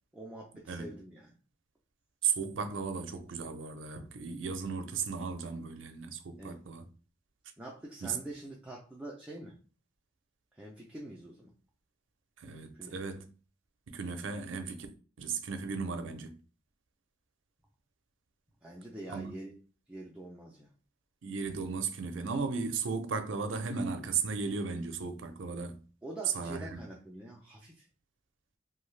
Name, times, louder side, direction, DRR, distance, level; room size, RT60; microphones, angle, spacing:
voice 1, 0.1-1.4 4.0-4.2 6.4-6.7 7.6-9.6 10.5-11.5 12.7-13.0 18.6-19.6 19.9-20.7 26.0-27.9, right 1 dB, 5° right, 0.4 m, -45 dB
voice 2, 2.2-6.8 8.0-8.2 12.4-13.2 13.9-14.9 15.2-16.3 19.1-19.3 21.2-25.8 26.3-26.8, right 5 dB, 85° right, 0.5 m, -35 dB
2.6 x 2.3 x 3.2 m
head